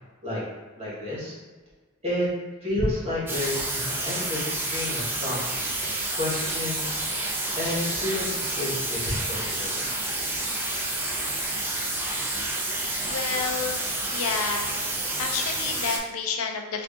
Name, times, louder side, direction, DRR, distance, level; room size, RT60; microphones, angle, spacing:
voice 1, 0.8-1.3 2.0-2.3 2.6-5.6 6.1-6.9 7.5-9.9, left 1 dB, 30° right, -7 dB, 1.4 m, -30 dB
sound 1, 3.3-16.0, right 2 dB, 10° right, 0.5 m, -29 dB
voice 2, 13.0-13.8 14.1-14.8 15.2-16.8, left 5 dB, 85° left, 3 dB, 0.5 m, -29 dB
3.4 x 2.5 x 3.6 m, 1.4 s
head